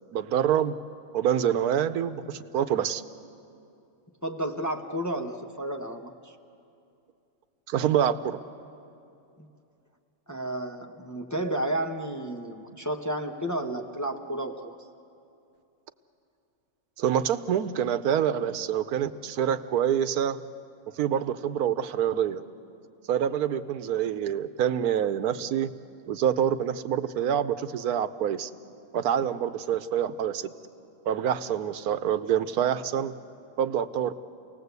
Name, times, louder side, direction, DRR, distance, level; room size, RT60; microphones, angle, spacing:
voice 1, 0.1-0.8 1.1-3.0 7.7-8.4 17.0-20.4 21.0-22.4 23.1-25.7 26.1-28.5 28.9-30.5 31.1-33.1 33.6-34.1, right 9 dB, 90° right, 12 dB, 1.2 m, -26 dB
voice 2, 4.2-6.4 9.4-9.5 10.3-14.8, right 1 dB, 15° left, 3 dB, 0.8 m, -32 dB
28.5 x 19.0 x 8.1 m, 2.6 s
omnidirectional pair, 1.5 m